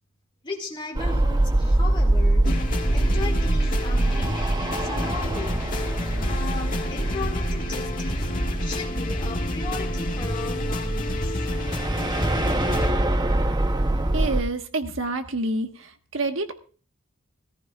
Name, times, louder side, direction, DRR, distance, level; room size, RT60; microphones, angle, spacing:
voice 1, 0.4-4.4 4.8-5.8 6.3-8.3 8.6-11.4, left 3 dB, 25° left, 2.1 m, -36 dB
sound 1, 0.9-14.4, right 1 dB, 20° right, 0.7 m, -24 dB
sound 2, 1.8-2.4 2.6-3.1 3.3-5.7 6.1-8.0 9.4-10.8 12.2-13.3, equal, 5° right, 2.1 m, -47 dB
sound 3, 2.4-12.9, left 2 dB, 45° left, 1.7 m, -30 dB
voice 2, 14.1-16.5, right 2 dB, 75° right, 1.4 m, -28 dB
17.5 x 14.5 x 2.4 m
head